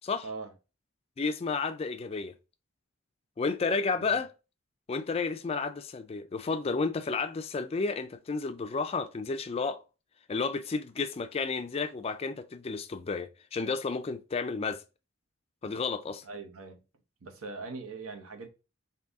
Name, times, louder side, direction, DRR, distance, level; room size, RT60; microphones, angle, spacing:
voice 1, 1.2-2.3 3.4-4.3 4.9-9.8 10.3-14.8 15.6-16.2, left 4 dB, 30° left, 0.3 m, -32 dB
voice 2, 16.2-16.8 17.2-18.5, right 4 dB, 85° right, 0.8 m, -41 dB
3.9 x 2.7 x 3.5 m
head